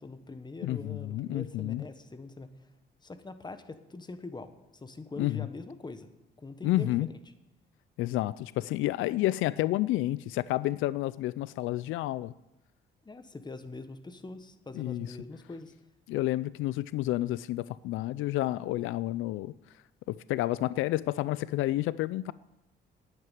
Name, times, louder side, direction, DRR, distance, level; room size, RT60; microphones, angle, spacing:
voice 1, 0.0-2.5 3.0-6.1 6.4-7.2 13.0-15.7, left 3 dB, 20° left, 10 dB, 1.3 m, -43 dB
voice 2, 0.6-1.9 5.2-5.5 6.6-7.1 8.0-12.3 14.7-15.1 16.1-19.5 20.1-22.3, left 16 dB, 90° left, 18 dB, 0.4 m, -30 dB
10.5 x 9.0 x 9.4 m, 0.94 s
cardioid pair, 90°, 20 cm